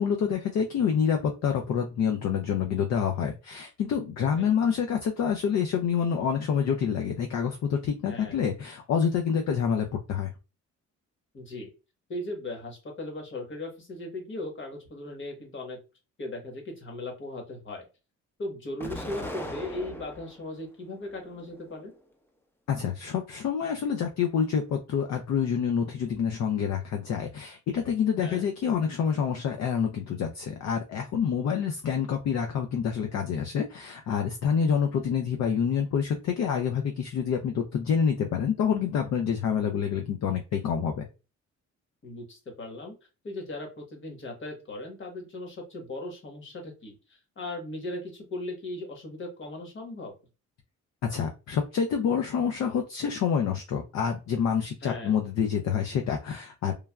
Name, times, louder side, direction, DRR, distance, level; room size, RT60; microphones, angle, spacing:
voice 1, 0.0-10.3 22.7-41.0 51.0-56.7, left 7 dB, 60° left, 4 dB, 0.5 m, -27 dB
voice 2, 4.2-4.5 8.1-8.4 11.3-11.7 12.1-15.8 16.2-17.8 18.4-21.9 28.2-28.5 42.0-42.9 43.2-47.0 47.4-50.1 54.8-55.2, left 2 dB, 40° left, 2 dB, 1.2 m, -38 dB
Explosion, 18.8-20.4 21.0-21.9, left 1 dB, 5° left, 0.5 m, -39 dB
3.2 x 2.2 x 2.3 m, 0.30 s
cardioid pair, 90°, 30 cm